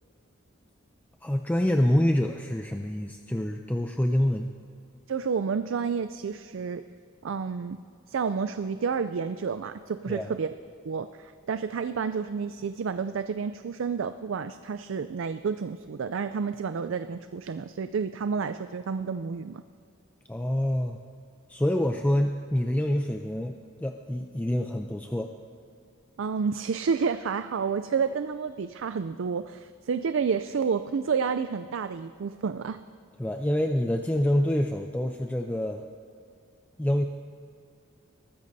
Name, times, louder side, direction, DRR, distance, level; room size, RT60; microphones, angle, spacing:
voice 1, 1.2-4.5 10.1-10.3 20.3-21.0 21.5-25.3 33.2-35.8 36.8-37.0, left 1 dB, 10° left, 4 dB, 0.4 m, -26 dB
voice 2, 5.1-6.8 7.2-7.8 8.1-10.5 10.8-19.6 26.2-32.8, right 6 dB, 70° right, 10 dB, 0.4 m, -30 dB
22.0 x 13.5 x 2.7 m, 2.4 s
head